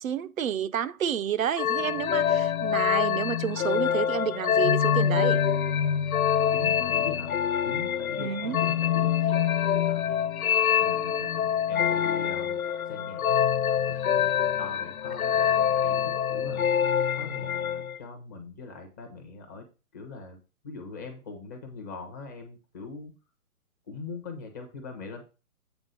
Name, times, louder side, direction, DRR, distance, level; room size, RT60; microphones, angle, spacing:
voice 1, 0.0-5.4 8.2-8.6, right 8 dB, 65° right, 0.6 m, -30 dB
sound 1, 1.6-18.0, left 9 dB, 70° left, 0.7 m, -25 dB
voice 2, 6.5-7.3 7.6-9.1 9.6-10.2 10.8-12.6 12.9-13.3 13.9-16.7 17.2-19.6 19.9-20.4 20.6-23.1 23.9-25.2, left 4 dB, 10° left, 0.6 m, -41 dB
8.0 x 3.5 x 6.6 m
figure-of-eight pair, 140°, 45 cm